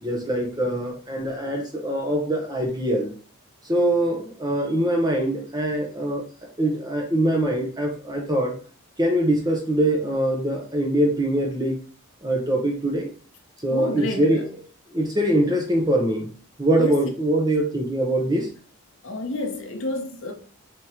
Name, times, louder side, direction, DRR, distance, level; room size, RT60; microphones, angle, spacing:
voice 1, 0.0-3.1 3.7-6.2 6.6-8.5 9.0-11.8 12.2-13.1 13.6-14.4 14.9-16.3 16.6-18.5, right 1 dB, 20° right, 0.7 m, -23 dB
voice 2, 13.7-14.3 16.8-17.0 19.0-20.3, left 2 dB, 60° left, 0.8 m, -29 dB
3.6 x 3.0 x 4.2 m
head